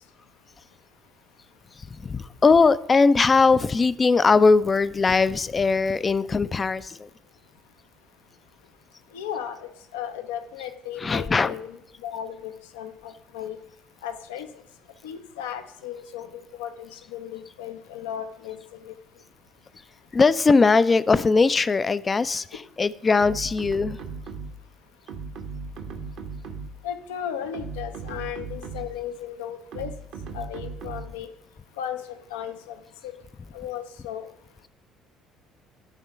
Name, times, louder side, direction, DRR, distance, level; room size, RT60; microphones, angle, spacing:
voice 1, 1.8-7.1 11.0-11.5 20.1-24.0, left 4 dB, 30° left, 16 dB, 0.4 m, -20 dB
voice 2, 9.1-13.6 14.0-14.5 15.0-19.0 26.8-29.9 30.3-31.3 31.8-32.8 33.0-33.1 33.5-34.3, left 9 dB, 75° left, 8 dB, 0.6 m, -35 dB
sound 1, 23.2-24.7 25.1-26.9 27.4-29.1 29.7-31.2, right 4 dB, 60° right, 0.8 m, -37 dB
10.5 x 3.6 x 5.4 m, 0.76 s
figure-of-eight pair, 55°, 0 cm